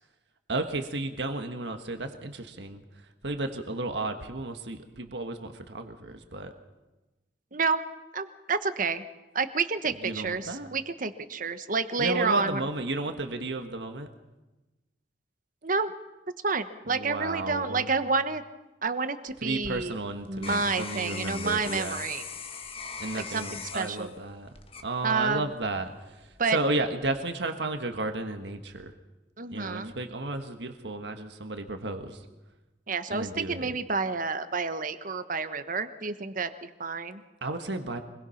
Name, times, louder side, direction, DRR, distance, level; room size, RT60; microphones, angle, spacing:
voice 1, 0.5-2.8 3.2-6.5 10.0-10.7 12.0-14.1 16.9-17.9 19.4-22.0 23.0-24.5 24.8-25.9 26.5-28.9 29.5-32.2 33.1-33.7 37.4-38.0, right 2 dB, 75° right, 6 dB, 1.6 m, -33 dB
voice 2, 7.5-7.8 8.1-9.0 9.3-12.6 15.6-15.9 16.4-18.4 18.8-19.9 20.3-22.2 23.1-24.1 25.0-25.5 26.4-26.6 29.4-29.9 32.9-37.2, right 4 dB, 50° right, 10 dB, 1.2 m, -29 dB
sound 1, 19.3-25.5 26.0-26.5, left 5 dB, 30° left, 1.4 m, -41 dB
25.5 x 21.0 x 5.9 m, 1.1 s
head